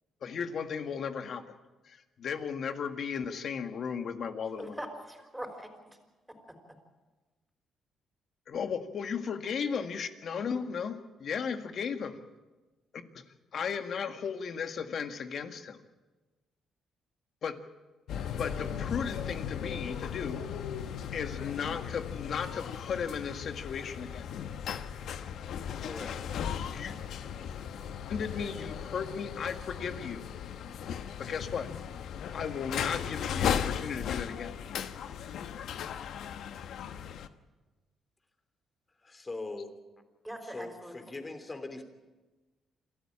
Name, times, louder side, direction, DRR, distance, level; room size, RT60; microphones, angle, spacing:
voice 1, 0.2-1.6 1.9-4.8 8.5-12.2 13.1-13.2 13.5-15.8 17.4-17.6 18.4-20.4 21.1-24.3 26.7-27.0 28.1-30.3 31.2-31.7 32.3-34.6, left 6 dB, 60° left, 7 dB, 1.8 m, -35 dB
voice 2, 4.6-6.0 6.3-6.6 40.2-40.9, right 1 dB, 5° right, 4 dB, 5.0 m, -42 dB
sound 1, 18.1-37.3, left 8 dB, 75° left, 1.1 m, -37 dB
voice 3, 25.8-26.2 39.0-39.8 40.4-41.8, left 3 dB, 25° left, 8 dB, 3.2 m, -41 dB
27.5 x 13.5 x 8.8 m, 1.2 s
cardioid pair, 90°, 0 cm